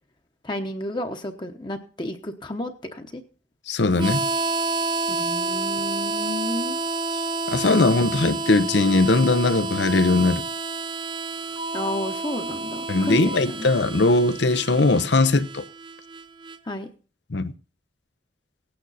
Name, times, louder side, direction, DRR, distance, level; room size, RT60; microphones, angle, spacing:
voice 1, 0.4-3.2 5.1-6.8 11.7-13.7 16.7-16.9, left 1 dB, 25° left, 0.9 m, -31 dB
voice 2, 3.7-4.3 7.5-10.4 12.9-15.6 17.3-17.5, left 2 dB, 80° left, 0.8 m, -20 dB
Harmonica, 3.9-16.6, right 3 dB, 25° right, 0.5 m, -29 dB
16.5 x 9.0 x 4.1 m
head